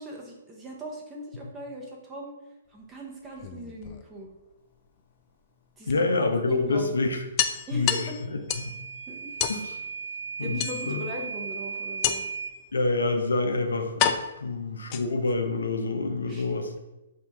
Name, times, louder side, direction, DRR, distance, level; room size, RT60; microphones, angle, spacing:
voice 1, 0.0-2.3 2.7-4.3 5.8-6.0 6.5-6.9 7.7-8.2 9.1-9.4 10.4-12.2 16.3-16.5, equal, 15° right, -2 dB, 0.8 m, -39 dB
sound 1, 3.3-4.4 5.9-6.0 6.4-6.5 6.8-6.9 7.4-8.8 9.4-9.6 10.6-11.2 12.0-12.5 13.3-13.4 14.0-15.4, left 9 dB, 35° left, 0.3 m, -29 dB
voice 2, 5.9-7.2 7.7-7.9 8.6-8.7 9.5-9.7 10.4-11.0 12.7-14.1 14.4-16.7, left 3 dB, 90° left, 5 dB, 0.6 m, -27 dB
Microwave oven / Alarm, 8.5-12.6, right 5 dB, 80° right, 0.6 m, -36 dB
4.3 x 2.8 x 3.5 m, 0.99 s
hypercardioid pair, 140°, 0 cm